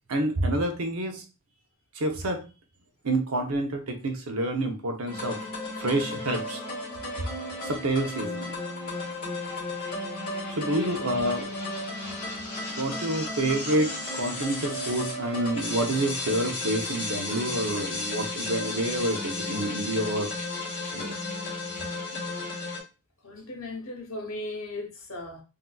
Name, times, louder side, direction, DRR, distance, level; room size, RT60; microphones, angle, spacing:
voice 1, 0.1-1.2 1.9-2.4 3.0-5.4 5.8-6.6 7.6-8.5 10.6-11.5 12.8-20.3 20.9-21.1, right 1 dB, 80° right, 0.7 m, -28 dB
sound 1, 5.1-22.8, left 2 dB, 40° left, 1.6 m, -34 dB
voice 2, 23.2-25.4, left 2 dB, 65° left, 1.0 m, -37 dB
3.7 x 2.6 x 2.3 m
head